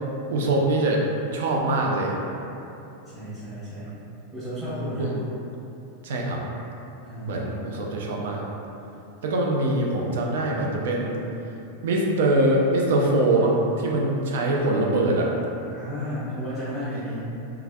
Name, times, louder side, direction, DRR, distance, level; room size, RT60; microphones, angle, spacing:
voice 1, 0.3-1.0 1.3-2.1 5.0-5.1 6.0-6.4 7.3-8.4 9.2-11.2 11.8-15.3, right 2 dB, 60° right, -1 dB, 0.4 m, -23 dB
voice 2, 3.1-4.0 4.3-5.1 7.0-8.0 15.7-17.2, equal, 5° right, -14 dB, 1.0 m, -33 dB
3.1 x 2.3 x 2.3 m, 2.9 s
figure-of-eight pair, 90°, 0 cm